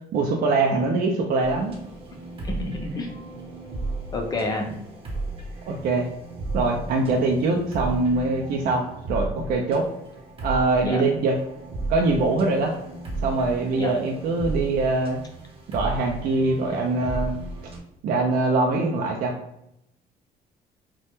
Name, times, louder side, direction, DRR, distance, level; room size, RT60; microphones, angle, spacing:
voice 1, 0.1-1.8 5.6-6.1 6.5-9.9 10.4-11.4 11.9-12.7 13.2-15.2 15.7-17.4 18.0-19.3, right 3 dB, 60° right, 1 dB, 0.4 m, -23 dB
sound 1, 1.4-17.8, right 2 dB, 35° right, 0.7 m, -35 dB
voice 2, 2.4-3.1 4.1-4.8 10.8-11.0 13.8-13.9, left 2 dB, 25° left, 2 dB, 0.5 m, -29 dB
2.2 x 2.1 x 2.9 m, 0.80 s
cardioid pair, 110°, 17 cm